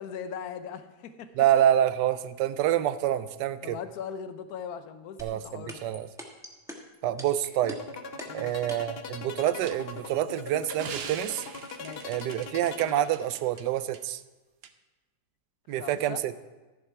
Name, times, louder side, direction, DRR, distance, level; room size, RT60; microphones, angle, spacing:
voice 1, 0.0-1.3 3.6-5.9 8.3-8.6 11.8-12.2 15.7-16.2, left 7 dB, 70° left, 11 dB, 1.2 m, -40 dB
voice 2, 1.4-3.8 5.2-6.1 7.0-7.8 8.3-11.5 12.0-14.2 15.7-16.3, right 11 dB, 85° right, 14 dB, 1.2 m, -27 dB
sound 1, 5.2-9.0, equal, ahead, 1.0 m, -41 dB
sound 2, 7.6-13.6, left 4 dB, 45° left, 0.8 m, -40 dB
sound 3, 9.6-13.6 13.9-14.0 14.6-14.7, right 7 dB, 65° right, 0.6 m, -43 dB
14.0 x 7.2 x 4.7 m, 1.2 s
omnidirectional pair, 1.8 m